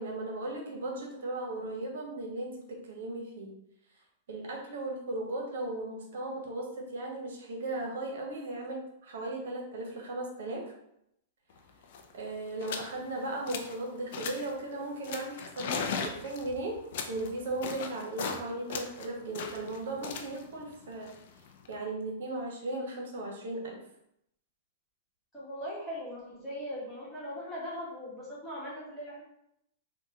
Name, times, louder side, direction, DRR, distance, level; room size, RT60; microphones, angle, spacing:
voice 1, 0.0-3.5 4.3-10.6 12.1-16.8 17.1-21.1 21.7-23.8, right 2 dB, 75° right, 1 dB, 0.8 m, -37 dB
sound 1, 11.6-11.7 11.8-12.1 12.6-12.9 13.3-13.8 14.1-14.6 15.0-18.4 18.7-21.7, left 6 dB, 60° left, 0.4 m, -38 dB
voice 2, 25.3-29.2, equal, 10° left, -7 dB, 1.1 m, -39 dB
3.6 x 2.2 x 2.7 m, 0.77 s
supercardioid pair, 155°, 0 cm